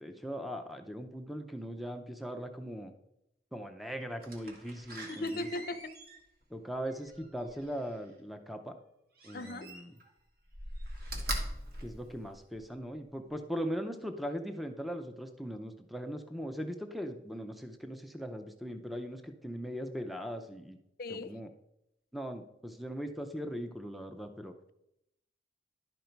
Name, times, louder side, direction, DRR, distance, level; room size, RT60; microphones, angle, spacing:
voice 1, 0.0-2.9 3.5-5.5 6.5-8.8 9.2-9.9 11.8-20.8 21.1-21.5 22.1-24.5, equal, ahead, 6 dB, 0.5 m, -39 dB
Slam, 4.2-8.1 9.2-10.1 10.5-12.8 13.3-13.4, right 1 dB, 55° right, 1.5 m, -42 dB
voice 2, 5.1-5.9 9.3-9.7 21.0-21.4, left 2 dB, 55° left, 9 dB, 0.6 m, -38 dB
11.0 x 5.3 x 4.5 m, 0.82 s
head